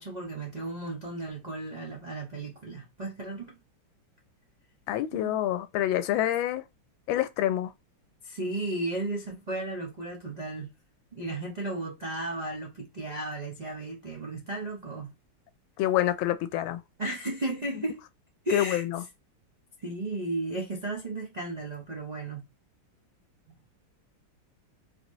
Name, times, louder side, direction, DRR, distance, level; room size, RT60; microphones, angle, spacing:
voice 1, 0.0-3.6 5.1-5.4 8.2-10.7 11.1-15.1 17.0-18.0 18.4-18.8 19.8-22.4 23.5-23.6, right 2 dB, 85° right, 0.3 m, -34 dB
voice 2, 4.9-6.6 7.1-7.7 15.8-16.8 18.5-19.0, left 13 dB, 90° left, 1.4 m, -27 dB
3.9 x 3.2 x 3.1 m
omnidirectional pair, 2.1 m